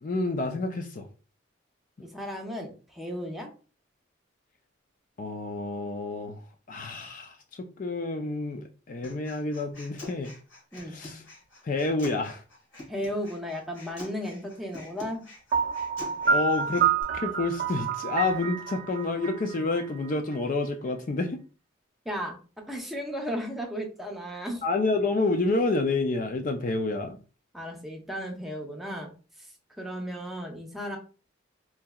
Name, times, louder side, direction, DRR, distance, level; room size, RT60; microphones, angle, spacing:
voice 1, 0.0-1.1 5.2-10.3 10.8-11.2 11.6-12.4 16.2-16.9 17.1-21.4 24.6-27.2, left 3 dB, 40° left, 0.4 m, -29 dB
voice 2, 2.0-3.5 10.7-11.0 12.9-15.2 22.0-22.4 22.7-24.6 27.5-29.1 29.8-31.0, equal, ahead, 0.7 m, -35 dB
Human voice, 9.0-17.0, left 2 dB, 70° left, 1.7 m, -47 dB
Piano, 15.5-20.4, right 6 dB, 45° right, 0.5 m, -28 dB
4.5 x 2.8 x 2.3 m
head